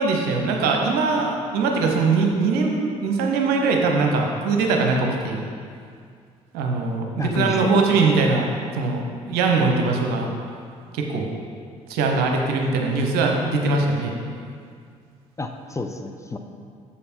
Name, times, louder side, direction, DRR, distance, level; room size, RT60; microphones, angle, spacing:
voice 1, 0.0-5.4 6.5-8.4 8.7-10.3 10.9-11.3 11.9-14.1, right 4 dB, 65° right, 1 dB, 0.9 m, -21 dB
voice 2, 7.2-8.0 15.4-16.4, left 3 dB, 15° left, 5 dB, 0.6 m, -30 dB
7.2 x 5.2 x 4.4 m, 2.2 s
figure-of-eight pair, 45°, 18 cm